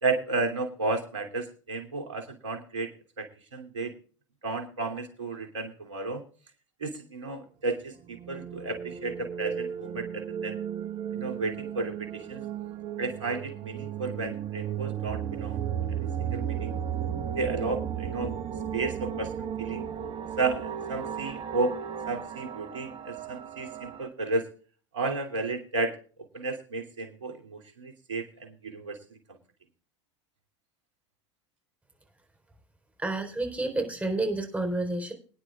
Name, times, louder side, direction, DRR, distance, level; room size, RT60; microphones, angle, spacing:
voice 1, 0.0-2.9 3.2-3.9 4.4-6.2 6.8-10.6 11.1-12.4 13.0-15.6 15.9-16.7 17.3-18.3 18.7-19.8 20.4-21.7 22.1-24.5 24.9-26.0 26.3-29.0, right 3 dB, 85° right, 3 dB, 2.8 m, -33 dB
sound 1, 8.0-24.1, right 9 dB, 35° right, 1.3 m, -35 dB
voice 2, 33.0-35.1, right 2 dB, 10° right, 4 dB, 4.1 m, -29 dB
25.0 x 9.8 x 2.4 m, 0.41 s
hypercardioid pair, 85°, 15 cm